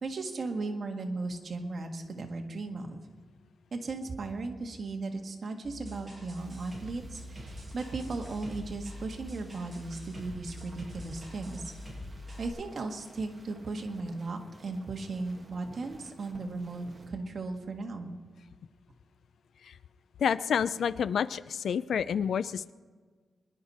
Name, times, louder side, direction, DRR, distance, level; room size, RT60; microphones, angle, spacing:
voice 1, 0.0-3.0 3.7-11.7 12.4-18.1, right 3 dB, 50° right, 3 dB, 1.6 m, -36 dB
sound 1, 5.6-12.5, equal, 5° right, 6.0 m, -44 dB
sound 2, 6.4-17.1, right 2 dB, 25° right, 1.9 m, -56 dB
voice 2, 20.2-22.7, left 7 dB, 80° left, 16 dB, 0.4 m, -29 dB
24.5 x 11.0 x 4.3 m, 1.5 s
wide cardioid pair, 145°, 0 cm